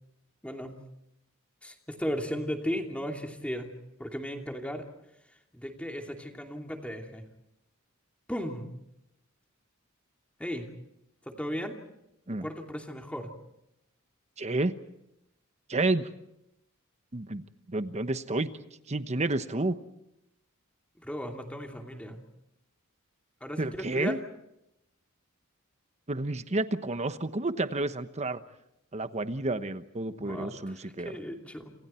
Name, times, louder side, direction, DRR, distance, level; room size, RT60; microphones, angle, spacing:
voice 1, 0.4-0.8 1.6-3.7 4.0-4.8 5.5-7.2 8.3-8.7 10.4-10.7 11.3-11.7 12.4-13.3 21.0-22.2 23.4-24.2 30.2-31.7, equal, 5° left, 3 dB, 2.8 m, -36 dB
voice 2, 14.4-14.7 15.7-16.1 17.1-17.4 17.7-18.5 18.9-19.8 23.6-24.2 26.1-28.4 28.9-31.1, right 2 dB, 30° right, 11 dB, 1.1 m, -30 dB
28.0 x 27.5 x 4.5 m, 0.84 s
head